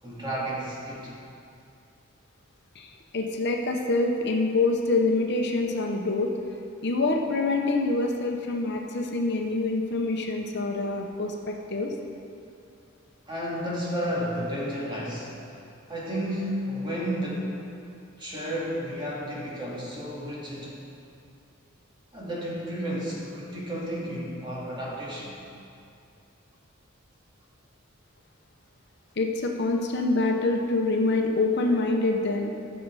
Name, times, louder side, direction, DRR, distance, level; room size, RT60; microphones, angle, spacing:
voice 1, 0.0-1.1 13.3-15.3 15.9-17.6 18.2-20.7 22.1-25.4, equal, 25° right, -6 dB, 2.5 m, -32 dB
voice 2, 2.7-6.3 6.8-11.9 29.2-32.5, left 2 dB, 55° left, 2 dB, 0.9 m, -26 dB
15.0 x 6.3 x 4.8 m, 2.6 s
head